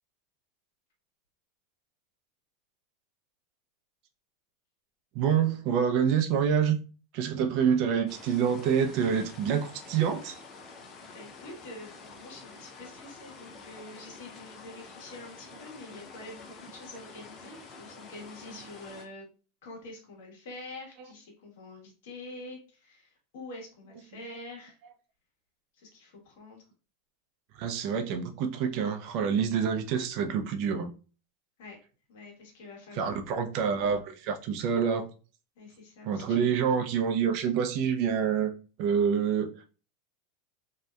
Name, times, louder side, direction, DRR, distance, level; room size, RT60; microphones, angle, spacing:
voice 1, 5.1-6.8 7.1-10.4 27.6-30.9 33.0-35.1 36.0-38.5 38.8-39.7, right 7 dB, 50° right, 0.4 m, -27 dB
sound 1, 8.1-19.1, left 4 dB, 35° left, 0.5 m, -48 dB
voice 2, 11.0-19.2 19.6-24.8 25.7-26.6 31.6-31.8 32.1-33.2 35.6-36.6, left 2 dB, 75° left, 1.1 m, -46 dB
2.7 x 2.2 x 2.3 m
supercardioid pair, 135°, 0 cm